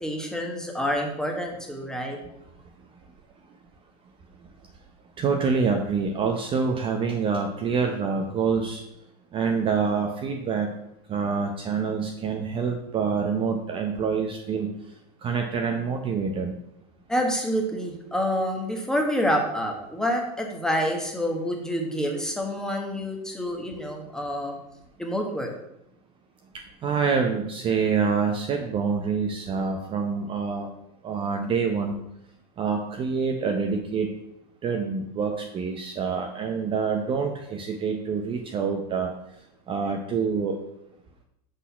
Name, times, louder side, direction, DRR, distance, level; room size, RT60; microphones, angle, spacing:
voice 1, 0.0-2.2 17.1-24.5 25.0-25.5, equal, 5° left, 1 dB, 1.2 m, -27 dB
voice 2, 5.2-8.8 9.3-10.7 11.1-14.7 15.2-16.5 26.8-30.7 31.0-32.0 32.6-34.1 34.6-39.1 39.7-40.6, right 5 dB, 25° right, 3 dB, 0.7 m, -26 dB
6.2 x 4.0 x 5.6 m, 0.81 s
supercardioid pair, 135°, 20 cm